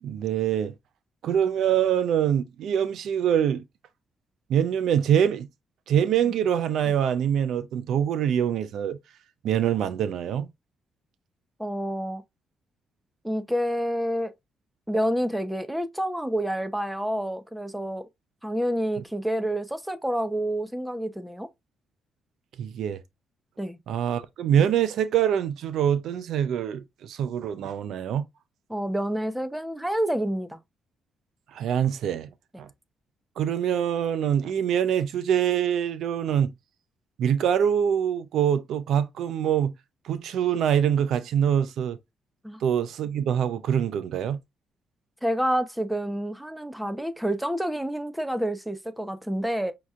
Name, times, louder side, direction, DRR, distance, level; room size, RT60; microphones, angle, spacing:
voice 1, 0.0-0.7 1.2-3.6 4.5-5.5 5.9-9.0 9.4-10.5 22.6-23.0 23.9-28.2 31.5-32.3 32.6-32.7 33.4-36.5 37.2-39.7 40.0-42.0 42.6-44.4, right 9 dB, 75° right, 0.4 m, -24 dB
voice 2, 11.6-12.2 13.2-14.3 14.9-18.0 18.4-21.5 23.6-23.8 28.7-30.6 42.4-42.6 45.2-49.7, equal, 5° right, 0.7 m, -28 dB
6.0 x 2.8 x 2.4 m
cardioid pair, 90°, 0 cm